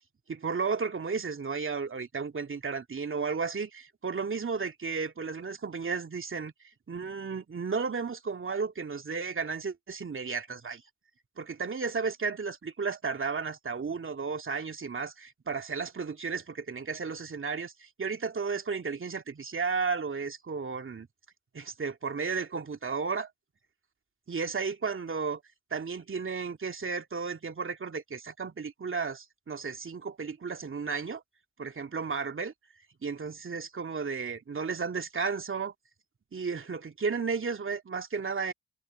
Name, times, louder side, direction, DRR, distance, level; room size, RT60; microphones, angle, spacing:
voice 1, 0.3-6.5 6.9-10.8 11.4-21.1 21.5-23.3 24.3-25.4 25.7-31.2 31.6-32.5 33.0-35.7 36.3-38.5, right 5 dB, 35° right, 2.5 m, -33 dB
hypercardioid pair, 45°, 34 cm